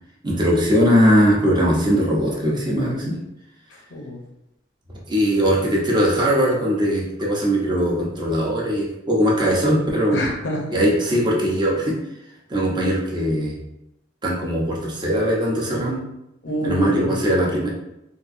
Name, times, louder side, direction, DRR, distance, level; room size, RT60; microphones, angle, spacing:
voice 1, 0.2-3.2 5.1-10.2 10.7-12.0 12.5-13.6 14.2-16.1 16.6-17.7, equal, 25° right, -4 dB, 0.7 m, -20 dB
voice 2, 3.7-4.2 10.1-10.8 16.4-17.3, equal, 75° left, 0 dB, 0.7 m, -27 dB
3.6 x 2.5 x 2.5 m, 0.87 s
head